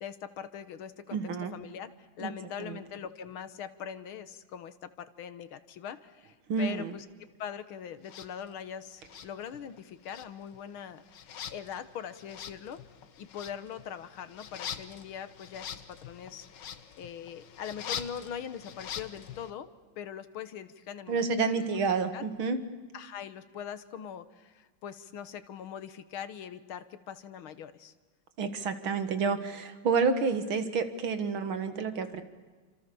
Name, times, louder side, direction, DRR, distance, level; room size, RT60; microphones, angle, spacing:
voice 1, 0.0-1.2 1.5-12.8 13.2-16.5 17.0-19.7 20.0-21.7 22.1-22.2 22.9-27.9, left 8 dB, 80° left, 12 dB, 2.0 m, -42 dB
voice 2, 1.1-1.6 2.2-2.3 2.6-2.8 6.5-6.9 21.1-22.6 28.4-32.2, right 5 dB, 75° right, 10 dB, 2.6 m, -29 dB
sound 1, 8.0-8.3 9.0-9.8 10.0-19.5, left 8 dB, 60° left, 1.7 m, -44 dB
28.5 x 26.5 x 7.0 m, 1.4 s
omnidirectional pair, 2.3 m